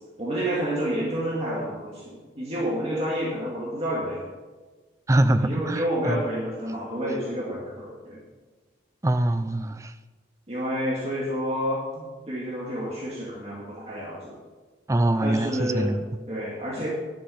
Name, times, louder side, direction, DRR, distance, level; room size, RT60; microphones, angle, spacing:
voice 1, 0.2-4.2 5.3-8.2 10.5-14.4 15.2-15.9 16.3-16.9, equal, 35° right, -6 dB, 2.0 m, -29 dB
voice 2, 5.1-6.2 9.0-9.9 14.9-16.3, right 1 dB, 15° right, 11 dB, 0.4 m, -24 dB
11.0 x 6.6 x 5.6 m, 1.4 s
head